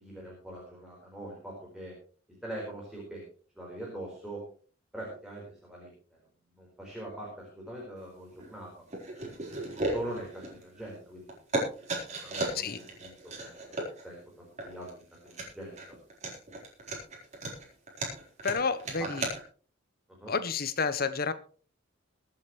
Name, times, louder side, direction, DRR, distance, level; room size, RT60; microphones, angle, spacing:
voice 1, 0.0-1.9 2.4-3.3 3.6-4.4 4.9-5.9 6.6-8.8 9.5-11.9 12.2-14.2 14.6-14.9 15.2-15.8 19.0-19.1 20.2-20.3, right 1 dB, 5° right, -4 dB, 4.5 m, -42 dB
sound 1, 8.3-8.6 8.9-11.0 11.3-19.4, right 2 dB, 35° right, 4.1 m, -35 dB
voice 2, 18.4-19.3 20.3-21.3, left 5 dB, 50° left, 13 dB, 1.0 m, -30 dB
23.0 x 8.8 x 3.2 m, 0.42 s
head